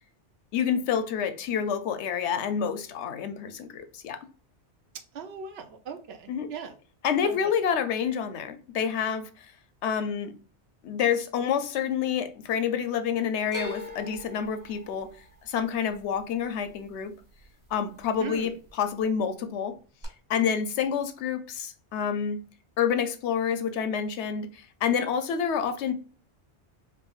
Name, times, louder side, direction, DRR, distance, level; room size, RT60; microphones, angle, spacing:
voice 1, 0.5-4.2 6.3-6.5 7.0-9.5 9.8-10.3 10.8-15.1 15.4-17.1 17.7-19.8 20.3-22.4 22.8-25.9, left 7 dB, 80° left, 0.9 m, -28 dB
voice 2, 5.1-6.7 7.2-7.5 18.2-18.5, right 6 dB, 70° right, 0.8 m, -39 dB
sound 1, 13.5-17.7 18.0-18.7 20.0-20.1, left 1 dB, 20° right, 1.0 m, -42 dB
5.0 x 2.5 x 2.4 m
omnidirectional pair, 1.2 m